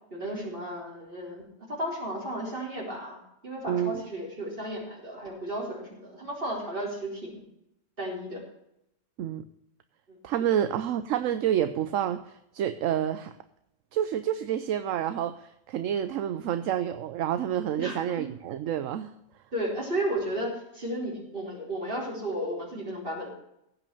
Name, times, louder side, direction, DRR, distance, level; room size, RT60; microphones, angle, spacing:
voice 1, 0.1-7.4 8.0-8.4 10.5-10.6 17.8-17.9 19.5-23.3, right 1 dB, 40° right, -2 dB, 4.3 m, -34 dB
voice 2, 3.7-4.0 9.2-9.4 10.2-13.3 13.9-19.1, right 10 dB, 75° right, 11 dB, 1.0 m, -28 dB
16.0 x 5.9 x 6.9 m, 0.81 s
omnidirectional pair, 1.4 m